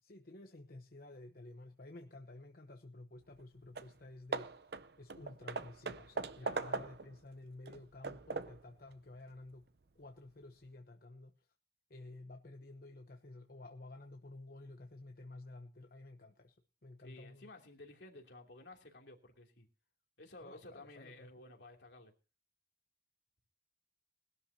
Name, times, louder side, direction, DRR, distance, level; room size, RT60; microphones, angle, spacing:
voice 1, 0.0-4.5 5.0-9.7 9.9-11.5 11.9-16.6 16.8-17.5 20.4-21.3, left 2 dB, 55° left, 1.0 m, -52 dB
Hammer / Wood, 3.4-3.5 3.7-4.0 4.3-7.2 7.6-8.7, right 4 dB, 60° right, 0.7 m, -41 dB
voice 2, 6.4-6.9 17.0-19.7 20.2-22.1, left 2 dB, 75° left, 3.0 m, -54 dB
20.5 x 12.5 x 2.8 m
head